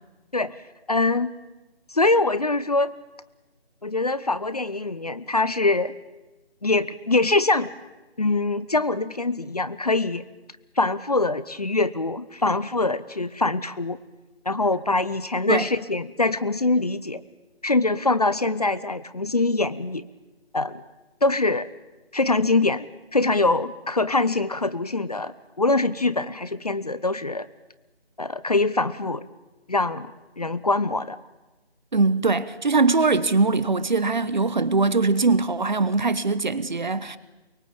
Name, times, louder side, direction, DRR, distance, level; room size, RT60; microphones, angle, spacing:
voice 1, 0.9-1.3 1.9-2.9 3.8-5.9 6.6-7.7 8.2-10.2 10.8-14.0 14.5-17.2 17.6-20.0 20.5-20.8 21.2-21.7 22.1-22.9 23.1-27.5 28.2-29.2 29.7-30.1 30.4-31.2, left 2 dB, 35° left, 0.8 m, -23 dB
voice 2, 31.9-37.2, right 3 dB, 45° right, 1.2 m, -22 dB
23.5 x 22.5 x 8.7 m
figure-of-eight pair, 165°, 32 cm